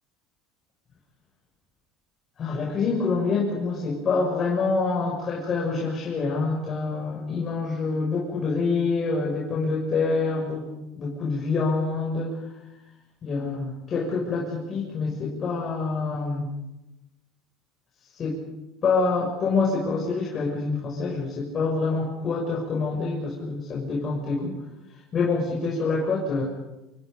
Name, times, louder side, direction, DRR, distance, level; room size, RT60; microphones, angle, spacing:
voice 1, 2.4-10.7 11.0-12.4 13.2-16.5 18.1-18.4 18.8-24.6 25.1-26.4, left 4 dB, 30° left, -3 dB, 6.5 m, -26 dB
29.0 x 27.5 x 5.3 m, 0.94 s
cardioid pair, 135°, 0 cm